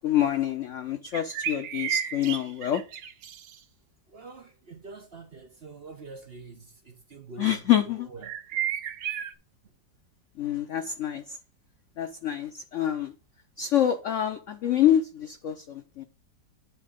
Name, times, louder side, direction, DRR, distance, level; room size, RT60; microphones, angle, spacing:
voice 1, 0.0-2.8 7.4-8.1 10.4-11.4 12.0-13.1 13.6-16.0, left 11 dB, 80° left, 0.6 m, -26 dB
sound 1, 1.1-3.6 8.2-9.3, right 9 dB, 70° right, 1.5 m, -32 dB
voice 2, 4.1-8.6, right 4 dB, 45° right, 0.8 m, -46 dB
9.6 x 3.7 x 5.1 m
omnidirectional pair, 2.0 m